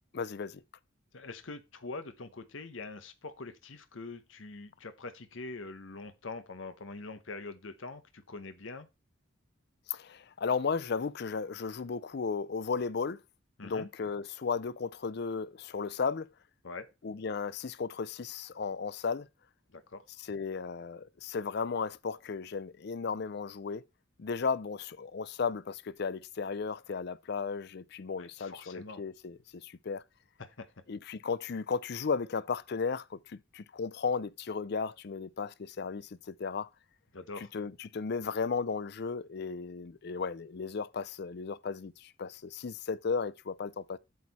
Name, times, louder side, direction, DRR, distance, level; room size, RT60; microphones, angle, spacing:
voice 1, 0.1-0.6 9.9-13.2 13.6-16.3 17.0-19.3 20.3-23.8 24.2-30.0 30.9-36.7 37.5-44.0, left 5 dB, 55° left, 0.5 m, -35 dB
voice 2, 1.1-8.9 13.6-13.9 16.6-16.9 19.7-20.0 28.2-29.0 30.4-30.7 37.1-37.5, left 3 dB, 75° left, 1.0 m, -44 dB
8.4 x 6.4 x 4.2 m
head